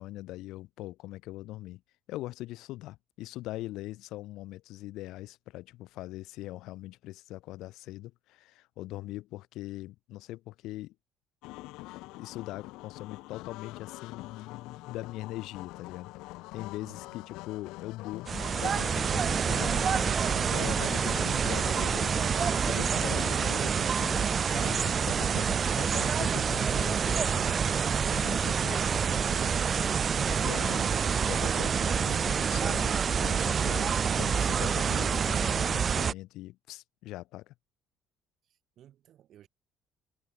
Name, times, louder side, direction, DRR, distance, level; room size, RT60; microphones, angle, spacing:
voice 1, 0.0-1.8 2.1-10.9 11.6-19.9 20.4-22.2 22.7-28.8 29.1-30.0 30.3-30.9 31.2-32.9 33.2-37.5, left 17 dB, 65° left, 3.1 m, -41 dB
sound 1, 11.4-23.7, left 20 dB, 80° left, 1.6 m, -44 dB
voice 2, 16.8-17.2 34.3-35.1 38.8-39.5, right 11 dB, 40° right, 7.5 m, -56 dB
sound 2, 18.3-36.1, right 6 dB, 25° right, 0.7 m, -27 dB
cardioid pair, 180°, 0 cm